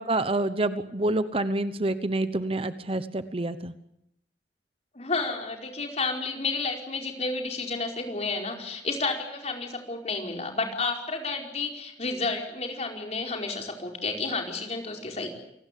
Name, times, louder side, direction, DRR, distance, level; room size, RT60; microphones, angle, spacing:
voice 1, 0.0-3.7, right 2 dB, 35° right, 12 dB, 1.0 m, -27 dB
voice 2, 4.9-15.3, left 3 dB, 40° left, 2 dB, 4.8 m, -31 dB
28.5 x 19.0 x 8.4 m, 0.80 s
head